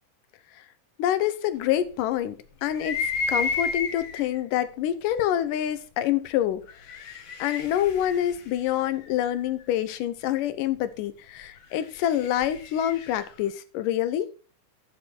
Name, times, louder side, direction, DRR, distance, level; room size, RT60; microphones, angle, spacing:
voice 1, 1.0-2.4 2.6-6.6 7.4-14.3, left 11 dB, 85° left, 2.5 m, -26 dB
sound 1, 2.7-4.4 5.2-5.3 6.6-9.5 11.6-13.3, left 4 dB, 55° left, 1.5 m, -32 dB
12.5 x 6.9 x 4.5 m
omnidirectional pair, 3.7 m